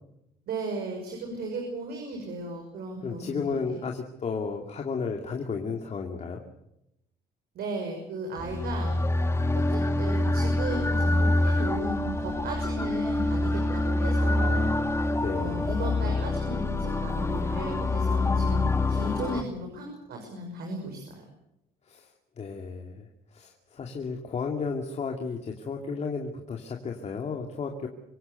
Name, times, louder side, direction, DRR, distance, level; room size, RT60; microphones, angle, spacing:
voice 1, 0.5-3.7 7.5-9.0 9.5-14.7 15.3-21.2, right 2 dB, 65° right, 2 dB, 6.2 m, -36 dB
voice 2, 3.0-6.4 15.1-15.7 21.9-22.1 22.4-27.9, left 5 dB, 40° left, 2 dB, 2.6 m, -33 dB
sound 1, 8.4-19.4, left 2 dB, 15° left, 1.9 m, -26 dB
26.0 x 17.0 x 8.1 m, 0.84 s
cardioid pair, 110°, 17 cm